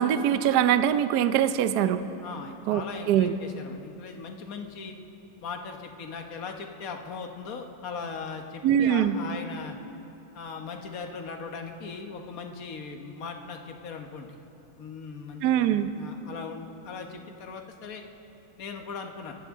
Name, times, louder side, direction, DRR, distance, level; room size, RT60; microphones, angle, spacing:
voice 1, 0.0-2.0 2.7-2.8 3.1-3.3 8.6-9.2 15.4-15.9, right 10 dB, 70° right, 11 dB, 0.9 m, -22 dB
voice 2, 2.2-5.0 5.4-9.8 10.3-14.4 14.8-18.0 18.6-19.4, left 5 dB, 50° left, 4 dB, 1.3 m, -39 dB
25.0 x 16.0 x 3.7 m, 2.9 s
omnidirectional pair, 2.4 m